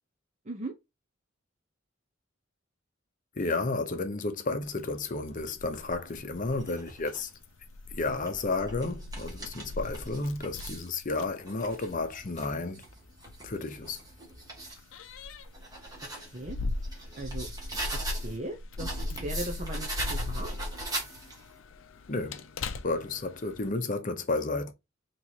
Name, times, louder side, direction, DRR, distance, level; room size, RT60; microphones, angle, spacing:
voice 1, 3.4-7.3 7.9-12.8 13.4-14.0 22.1-22.4 22.8-24.7, left 3 dB, 40° left, 0.7 m, -32 dB
Keys jangling, 4.6-23.7, left 2 dB, 80° left, 0.5 m, -40 dB
sound 1, 6.5-7.3 8.0-10.9 11.4-14.8 15.3-18.4 18.8-21.5, right 2 dB, 20° right, 1.5 m, -41 dB
voice 2, 16.2-16.6 16.9-17.5 18.1-20.5, right 1 dB, 35° right, 0.7 m, -38 dB
4.4 x 3.1 x 2.8 m
head